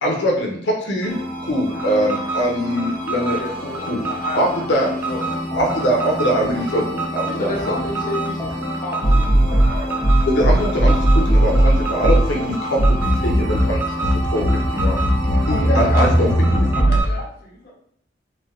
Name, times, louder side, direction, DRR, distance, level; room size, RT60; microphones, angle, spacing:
voice 1, 0.0-1.1 1.4-3.4 3.9-4.0 4.4-4.9 5.5-7.7 10.3-14.0 14.3-14.4 14.7-15.0 15.5-15.6 15.9-16.7, equal, 85° left, -1 dB, 0.6 m, -22 dB
sound 1, 1.0-17.0, equal, 10° left, 1.2 m, -20 dB
Alarm, 1.7-17.2, right 4 dB, 15° right, 0.4 m, -30 dB
voice 2, 3.3-5.3 7.3-10.0, left 2 dB, 45° left, -4 dB, 0.5 m, -31 dB
voice 3, 15.6-17.7, left 2 dB, 60° left, -3 dB, 1.0 m, -32 dB
3.3 x 2.6 x 2.3 m, 0.68 s
head